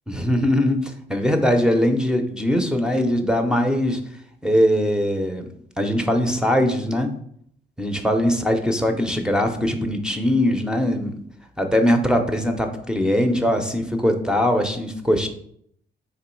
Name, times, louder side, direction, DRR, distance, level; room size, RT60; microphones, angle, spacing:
voice 1, 0.1-4.0 4.4-5.5 5.8-7.1 7.8-11.2 11.6-15.3, equal, 5° right, 3 dB, 0.5 m, -21 dB
3.6 x 3.0 x 4.4 m, 0.67 s
cardioid pair, 90°, 20 cm